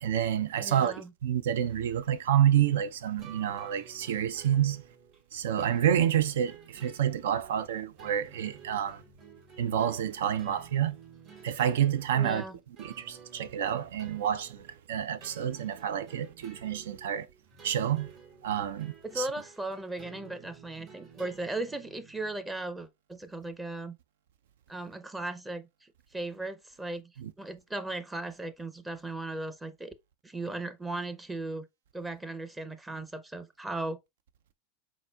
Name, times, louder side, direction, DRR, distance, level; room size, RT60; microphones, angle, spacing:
voice 1, 0.0-0.9 1.2-4.8 5.3-9.0 9.6-11.0 11.4-12.4 12.8-17.3 17.6-18.1 18.4-19.3 27.2-27.3, right 10 dB, 75° right, 0.4 m, -28 dB
voice 2, 0.6-1.1 12.1-12.6 19.0-23.9 24.7-27.0 27.4-29.9 30.2-31.7 31.9-34.0, right 2 dB, 10° right, 0.6 m, -37 dB
sound 1, 3.2-22.4, right 6 dB, 50° right, 1.8 m, -53 dB
4.1 x 3.7 x 2.3 m
hypercardioid pair, 95°, 0 cm